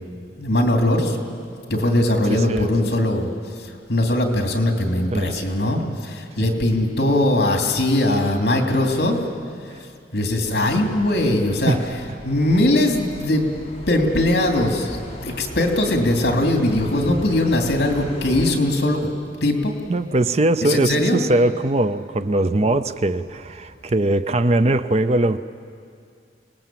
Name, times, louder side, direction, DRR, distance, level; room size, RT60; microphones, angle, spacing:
voice 1, 0.4-1.2 1.7-3.3 3.9-9.2 10.1-11.7 12.2-13.4 13.9-15.0 15.2-19.1 19.4-19.7 20.6-21.2 22.6-22.7, left 1 dB, 65° left, 2 dB, 2.8 m, -20 dB
voice 2, 2.3-2.7 5.1-5.4 6.4-6.5 11.7-11.9 19.9-25.4, right 2 dB, 35° right, 12 dB, 0.5 m, -21 dB
sound 1, 10.4-18.6, left 1 dB, 35° left, 2.0 m, -37 dB
26.5 x 19.5 x 7.6 m, 2.3 s
head